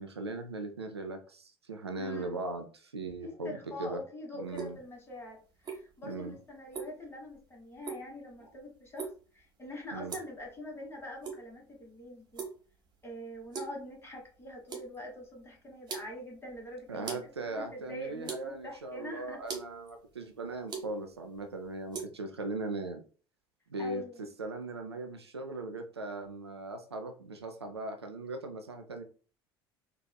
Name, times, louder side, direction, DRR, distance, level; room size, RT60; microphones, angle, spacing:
voice 1, 0.0-4.0 4.4-4.8 6.1-6.4 9.9-10.2 16.9-23.0 23.7-24.0 24.4-29.0, right 2 dB, 85° right, 5 dB, 0.4 m, -39 dB
voice 2, 2.0-2.4 3.2-12.5 13.0-19.4 23.8-24.2, left 1 dB, 20° left, 0 dB, 1.4 m, -44 dB
sound 1, 4.5-22.1, right 5 dB, 35° right, 1.0 m, -45 dB
4.0 x 2.3 x 2.2 m, 0.38 s
figure-of-eight pair, 60°, 13 cm